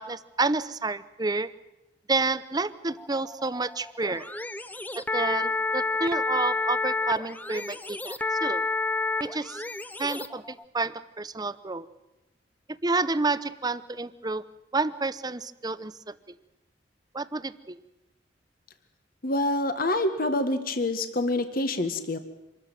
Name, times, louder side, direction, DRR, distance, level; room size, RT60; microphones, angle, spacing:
voice 1, 0.0-1.5 2.1-4.3 5.0-8.6 9.2-9.6 10.0-11.9 12.8-14.4 14.7-16.3 17.1-17.8, right 3 dB, 20° right, 15 dB, 0.8 m, -29 dB
sound 1, 2.9-10.6, left 3 dB, 10° left, 0.7 m, -30 dB
voice 2, 19.2-22.2, left 2 dB, 55° left, 9 dB, 1.6 m, -26 dB
26.0 x 14.0 x 9.2 m, 1.0 s
head